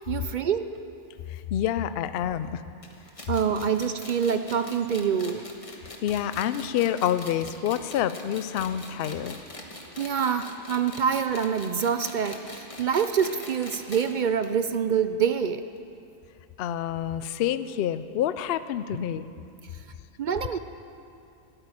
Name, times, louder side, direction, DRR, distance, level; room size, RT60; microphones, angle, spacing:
voice 1, 0.1-0.8 3.3-5.5 10.0-15.6 20.2-20.6, right 7 dB, 60° right, 10 dB, 0.5 m, -26 dB
voice 2, 1.3-2.6 6.0-9.4 10.3-10.4 16.6-19.3, left 10 dB, 60° left, 13 dB, 0.6 m, -28 dB
sound 1, 2.8-14.1 14.4-14.5 14.8-14.9 15.8-15.9, left 2 dB, 25° left, 1.3 m, -43 dB
13.0 x 9.0 x 9.7 m, 2.6 s
omnidirectional pair, 1.3 m